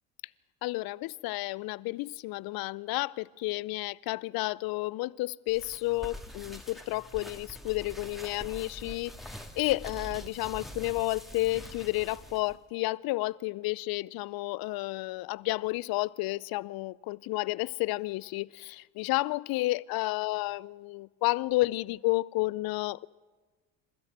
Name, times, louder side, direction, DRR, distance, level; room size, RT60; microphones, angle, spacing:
voice 1, 0.6-9.1 9.6-23.1, left 20 dB, 55° left, 0.6 m, -31 dB
sound 1, 5.5-12.5, left 1 dB, ahead, 2.4 m, -45 dB
27.5 x 13.0 x 8.0 m
hypercardioid pair, 65°, 43 cm